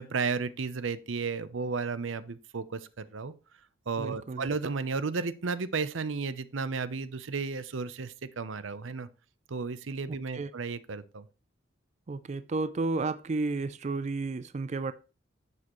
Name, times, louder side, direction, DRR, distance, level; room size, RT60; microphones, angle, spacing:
voice 1, 0.0-3.3 3.9-9.1 9.5-11.2, right 4 dB, 85° right, 0.7 m, -33 dB
voice 2, 4.0-4.5 10.1-10.5 12.1-14.9, right 3 dB, 35° right, 0.4 m, -32 dB
11.0 x 7.5 x 3.1 m
head